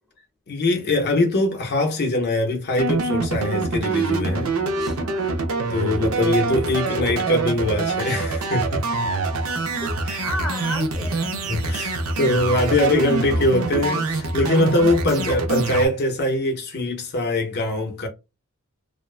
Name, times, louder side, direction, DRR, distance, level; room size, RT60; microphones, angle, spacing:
voice 1, 0.5-4.5 5.7-8.9 10.1-10.2 11.5-18.1, left 2 dB, 45° left, 0.5 m, -22 dB
sound 1, 2.8-15.9, right 3 dB, 70° right, 0.6 m, -25 dB
voice 2, 4.8-5.4 9.8-9.9 10.2-11.3 12.7-12.9, left 1 dB, ahead, 0.6 m, -32 dB
2.4 x 2.1 x 2.3 m
head